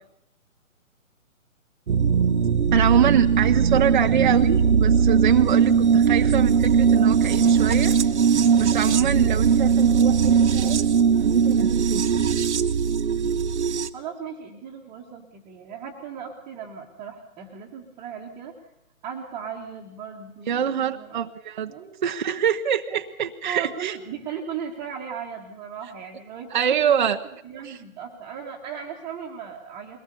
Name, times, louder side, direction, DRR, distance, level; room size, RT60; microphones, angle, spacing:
sound 1, 1.9-13.9, right 6 dB, 55° right, 1.2 m, -20 dB
voice 1, 2.7-7.9 8.6-12.0 20.5-21.7 22.0-24.0 26.5-27.2 27.7-27.8, right 8 dB, 35° right, 5 dB, 0.8 m, -24 dB
voice 2, 13.9-18.7 19.0-21.2 21.7-22.4 22.9-23.0 23.4-27.1 27.4-30.0, right 7 dB, 10° right, -3 dB, 1.4 m, -37 dB
22.0 x 19.0 x 6.9 m, 0.80 s
hypercardioid pair, 150°, 41 cm